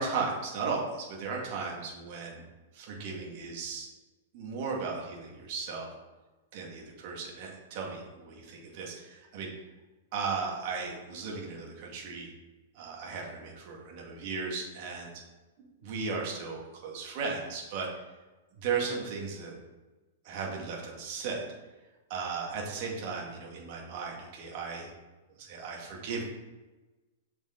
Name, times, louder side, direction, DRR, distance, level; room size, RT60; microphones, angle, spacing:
voice 1, 0.0-2.5 2.7-3.9 4.3-5.9 6.5-9.5 10.1-12.3 12.7-15.1 15.6-17.9 18.6-19.5 20.2-21.4 22.1-24.9 25.4-26.2, right 4 dB, 50° right, -2 dB, 2.2 m, -36 dB
7.1 x 5.2 x 3.9 m, 1.2 s
hypercardioid pair, 130°, 0 cm